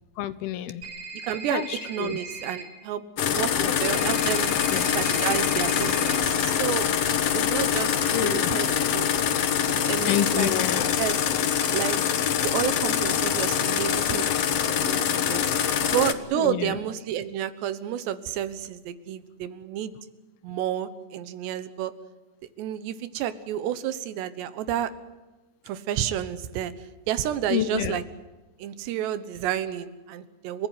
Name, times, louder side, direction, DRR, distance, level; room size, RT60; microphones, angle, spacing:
voice 1, 0.2-0.8 1.5-1.7 2.0-2.2 3.6-3.7 4.7-4.9 8.1-8.5 10.1-10.9 16.4-16.7 27.5-28.0, left 13 dB, 75° left, 14 dB, 2.6 m, -28 dB
sound 1, 0.8-2.6 3.8-6.2, right 4 dB, 45° right, 7.8 m, -39 dB
voice 2, 1.2-6.9 7.3-9.1 9.7-10.5 11.0-11.2 11.7-12.0 12.4-15.5 15.8-19.9 20.4-21.9 22.6-24.9 25.7-26.7 27.1-28.0 28.6-30.7, right 10 dB, 90° right, 13 dB, 3.4 m, -30 dB
sound 2, 3.2-16.1, left 8 dB, 90° left, 1.3 m, -24 dB
30.0 x 15.0 x 9.4 m, 1.2 s
omnidirectional pair, 4.8 m